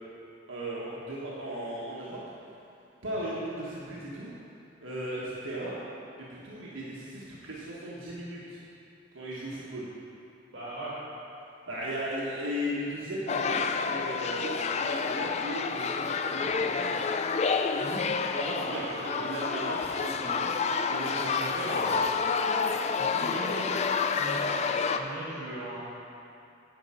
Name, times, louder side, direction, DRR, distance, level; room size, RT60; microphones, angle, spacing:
voice 1, 0.5-2.2 3.0-4.3 4.8-5.8 6.2-8.6 9.1-9.8 11.7-17.0 18.3-20.5 20.9-22.0, right 1 dB, 80° right, -6 dB, 1.4 m, -36 dB
voice 2, 10.5-10.9 17.8-18.0 18.6-19.2 20.2-20.3 21.2-22.0 23.0-23.7 24.0-24.5 24.9-25.8, right 1 dB, 60° right, -10 dB, 2.5 m, -39 dB
sound 1, 13.3-25.0, left 5 dB, 35° left, 0.3 m, -29 dB
10.0 x 4.7 x 7.6 m, 2.7 s
head